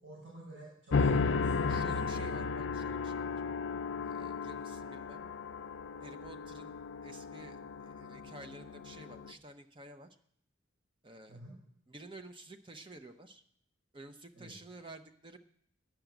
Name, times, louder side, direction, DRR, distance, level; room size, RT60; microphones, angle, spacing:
voice 1, 0.0-2.1 11.3-11.5 14.3-14.5, right 1 dB, 60° right, -7 dB, 6.1 m, -51 dB
sound 1, 0.9-9.3, left 4 dB, 65° left, 0.5 m, -34 dB
voice 2, 1.7-3.4 4.0-5.3 6.0-10.1 11.0-11.4 11.9-13.4 13.9-15.4, right 2 dB, 25° right, 7 dB, 0.6 m, -51 dB
11.5 x 5.9 x 9.1 m, 0.67 s
head